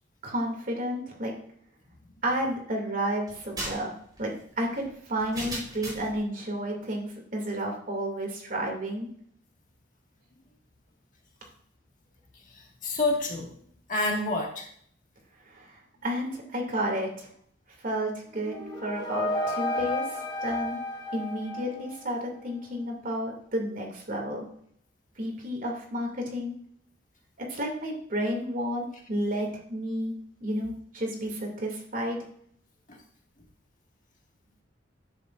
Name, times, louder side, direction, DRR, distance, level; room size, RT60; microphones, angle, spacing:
voice 1, 0.2-1.3 2.2-3.9 4.2-9.1 15.5-17.3 17.8-20.0 20.4-20.8 21.1-24.4 25.2-26.5 27.4-30.1 30.4-32.2, equal, 50° right, 0 dB, 2.4 m, -31 dB
sound 1, 3.3-6.2, right 1 dB, 20° right, 3.9 m, -38 dB
voice 2, 12.8-13.5 13.9-14.7, left 2 dB, 45° left, 0 dB, 1.8 m, -27 dB
sound 2, 18.3-22.2, left 1 dB, 25° left, 2.6 m, -32 dB
10.5 x 7.8 x 2.5 m, 0.62 s
head